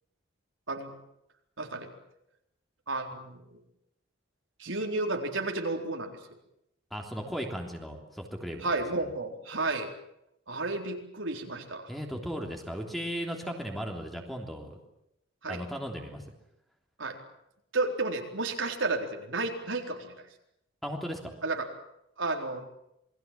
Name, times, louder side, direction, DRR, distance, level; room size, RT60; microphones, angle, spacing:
voice 1, 1.6-1.9 2.9-3.6 4.6-6.2 8.6-9.9 10.5-11.8 15.4-15.6 17.0-17.2 17.7-20.1 21.4-21.7 22.2-22.7, right 3 dB, 80° right, 2 dB, 4.1 m, -32 dB
voice 2, 6.9-9.1 11.9-14.8 15.5-16.2 20.8-21.3, equal, ahead, 2 dB, 3.3 m, -36 dB
28.0 x 21.5 x 7.6 m, 0.81 s
head